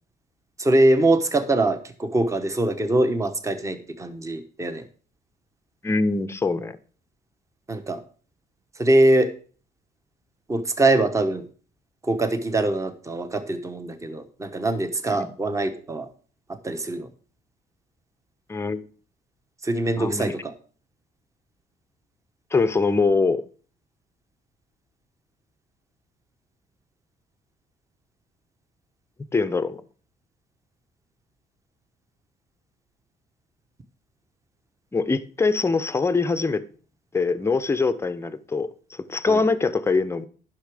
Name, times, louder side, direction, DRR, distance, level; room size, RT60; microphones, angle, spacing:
voice 1, 0.6-4.8 7.7-8.0 8.8-9.3 10.5-11.5 12.0-16.1 16.6-17.1 19.6-20.5 39.3-39.4, right 2 dB, 20° right, 1.2 m, -23 dB
voice 2, 5.8-6.8 15.2-15.3 18.5-18.9 20.0-20.3 22.5-23.4 29.3-29.8 34.9-36.6 37.1-40.3, left 4 dB, 15° left, 0.7 m, -23 dB
10.0 x 6.1 x 4.9 m
cardioid pair, 110°, 17 cm